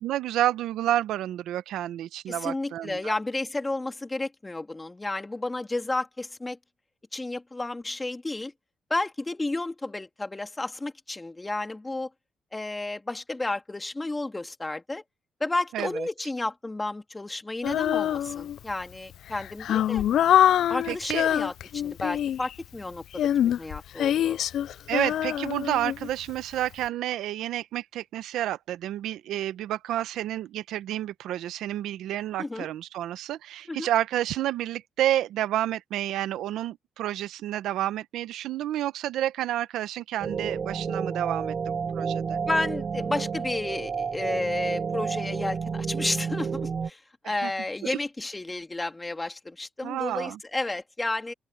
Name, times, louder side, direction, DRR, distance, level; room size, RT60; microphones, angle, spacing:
voice 1, 0.0-3.1 15.7-16.1 20.9-21.3 24.9-42.4 47.2-47.5 47.8-48.0 49.8-50.4, right 12 dB, 85° right, 0.9 m, -30 dB
voice 2, 2.3-6.6 7.1-8.5 8.9-12.1 12.5-15.0 15.4-20.0 20.7-24.4 32.4-32.7 33.7-33.9 42.5-51.3, left 2 dB, 15° left, 2.2 m, -32 dB
Female singing, 17.6-18.7 19.3-22.5 23.1-26.3, left 11 dB, 70° left, 0.4 m, -24 dB
sound 1, 40.2-46.9, right 6 dB, 45° right, 0.5 m, -30 dB
open air
cardioid pair, 90°, 0 cm